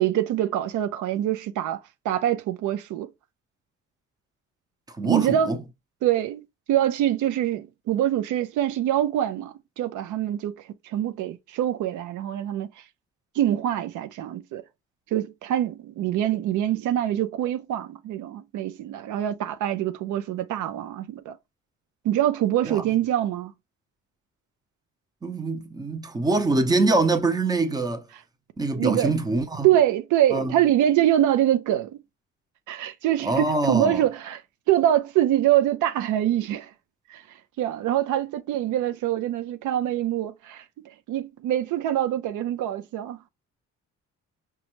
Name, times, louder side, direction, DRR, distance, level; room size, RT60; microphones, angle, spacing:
voice 1, 0.0-1.8 2.0-3.1 5.0-5.6 6.0-6.4 6.7-10.5 10.8-12.7 13.4-14.6 15.1-21.4 22.0-23.5 28.7-29.1 29.6-32.0 32.7-34.4 34.7-36.7 37.1-37.2 37.6-40.6 41.1-43.2, right 12 dB, 80° right, 0.5 m, -24 dB
voice 2, 4.9-5.6 22.6-22.8 25.2-28.0 28.6-29.7 30.3-30.5 33.2-34.0, right 2 dB, 15° right, 0.6 m, -24 dB
5.1 x 2.3 x 2.9 m
cardioid pair, 90°, 30 cm